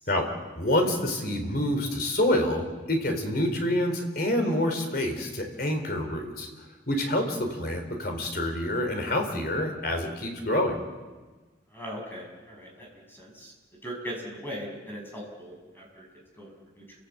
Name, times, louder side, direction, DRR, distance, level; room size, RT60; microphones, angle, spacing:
voice 1, 0.6-6.5 6.9-10.8, left 1 dB, 55° left, 4 dB, 4.2 m, -27 dB
voice 2, 11.7-13.5 13.8-16.0 16.4-16.8, equal, 10° left, 0 dB, 6.7 m, -39 dB
29.5 x 17.5 x 8.2 m, 1.3 s
head